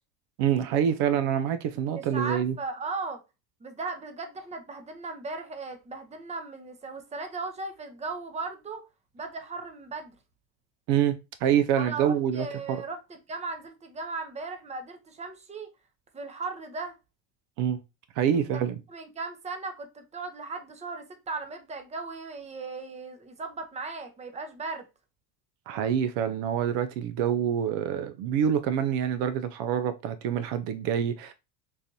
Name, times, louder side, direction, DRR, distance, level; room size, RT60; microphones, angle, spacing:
voice 1, 0.4-2.6 10.9-12.8 17.6-17.8 18.2-18.8 25.7-31.3, right 9 dB, 60° right, 0.5 m, -26 dB
voice 2, 2.0-3.2 3.6-8.8 9.1-10.2 11.8-15.7 16.1-16.9 18.9-24.9, right 3 dB, 15° right, 0.6 m, -37 dB
3.9 x 2.5 x 2.7 m
hypercardioid pair, 85°, 50 cm